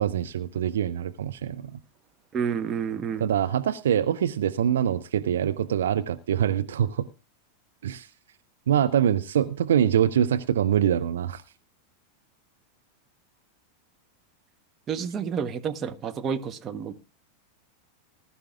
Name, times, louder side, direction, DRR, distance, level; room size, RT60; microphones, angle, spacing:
voice 1, 0.0-1.8 3.2-7.0 7.8-8.1 8.7-11.4, right 9 dB, 60° right, 12 dB, 0.6 m, -24 dB
voice 2, 2.3-3.3 14.9-17.0, right 7 dB, 25° right, 8 dB, 1.0 m, -30 dB
20.0 x 11.5 x 2.4 m, 0.29 s
figure-of-eight pair, 90°, 0 cm